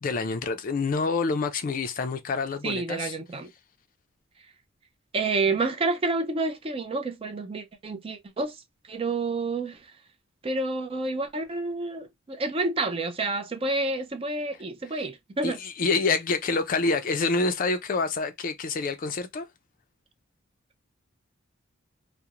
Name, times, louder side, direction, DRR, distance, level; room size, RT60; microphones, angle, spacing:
voice 1, 0.0-3.1 15.4-19.5, left 4 dB, 45° left, 0.4 m, -27 dB
voice 2, 2.6-3.5 5.1-8.6 8.9-9.9 10.4-15.6, right 3 dB, 30° right, 0.4 m, -29 dB
2.4 x 2.0 x 2.8 m
head